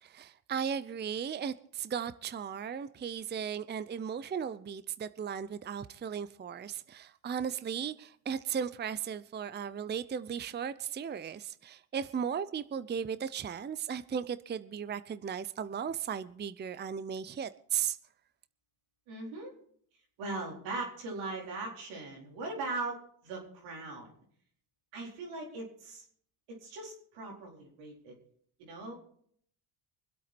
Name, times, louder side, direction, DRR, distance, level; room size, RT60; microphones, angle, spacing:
voice 1, 0.0-18.0, right 7 dB, 25° right, 0.6 m, -36 dB
voice 2, 19.1-19.5 20.2-24.1 24.9-26.0 26.5-28.2 28.6-29.0, right 3 dB, 85° right, 4.4 m, -40 dB
25.0 x 8.4 x 4.3 m
supercardioid pair, 75°, 46 cm